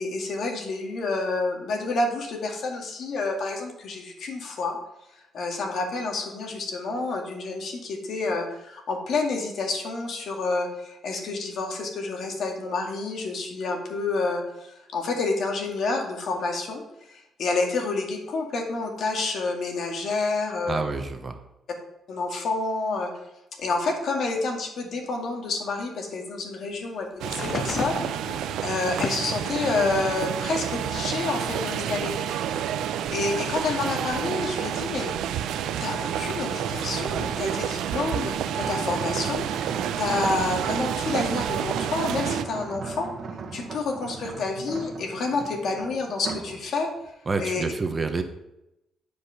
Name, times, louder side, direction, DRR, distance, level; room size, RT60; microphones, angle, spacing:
voice 1, 0.0-4.8 5.3-16.8 17.1-20.8 22.1-23.1 23.6-28.1 28.6-32.3 33.1-35.1 35.8-43.1 43.5-46.9 47.4-47.6, left 3 dB, 65° left, 2 dB, 2.1 m, -29 dB
voice 2, 20.7-21.4 47.3-48.2, right 4 dB, 30° right, 6 dB, 1.0 m, -28 dB
sound 1, 27.2-30.3 30.8-31.9 32.9-33.0, left 6 dB, 50° left, 0.5 m, -36 dB
sound 2, 27.2-42.4, right 9 dB, 85° right, 0.6 m, -29 dB
sound 3, 36.4-46.6 47.0-47.3, right 4 dB, 55° right, 1.4 m, -38 dB
10.0 x 5.1 x 5.8 m, 0.88 s
cardioid pair, 90°, 0 cm